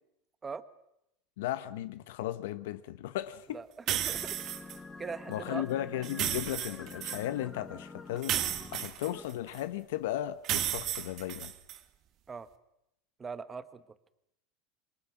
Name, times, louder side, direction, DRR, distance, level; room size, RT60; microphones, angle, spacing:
voice 1, 1.4-3.6 5.3-11.5, left 13 dB, 85° left, 1.2 m, -36 dB
voice 2, 3.5-4.4 5.0-5.7 12.3-12.5 13.2-13.8, right 5 dB, 15° right, 1.1 m, -41 dB
sound 1, 3.9-4.8 6.0-7.2 8.2-9.6 10.4-11.8, right 11 dB, 35° right, 1.8 m, -33 dB
sound 2, 4.1-9.2, left 3 dB, 10° left, 1.4 m, -47 dB
28.0 x 24.0 x 6.0 m
supercardioid pair, 170°, 0 cm